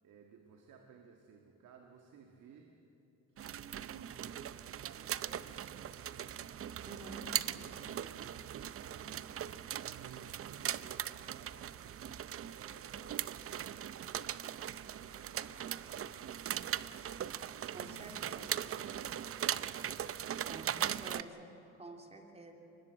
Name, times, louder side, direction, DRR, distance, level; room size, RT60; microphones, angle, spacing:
voice 1, 0.0-2.7 3.3-6.2 6.6-11.6 12.3-16.9 17.5-19.4, right 6 dB, 80° right, 3 dB, 1.8 m, -58 dB
sound 1, 3.4-21.2, right 10 dB, 50° right, 0.6 m, -40 dB
voice 2, 6.8-7.3 17.7-18.5 20.5-22.5, right 2 dB, 20° right, 3 dB, 3.0 m, -50 dB
23.5 x 20.0 x 7.7 m, 2.8 s
cardioid pair, 90°, 30 cm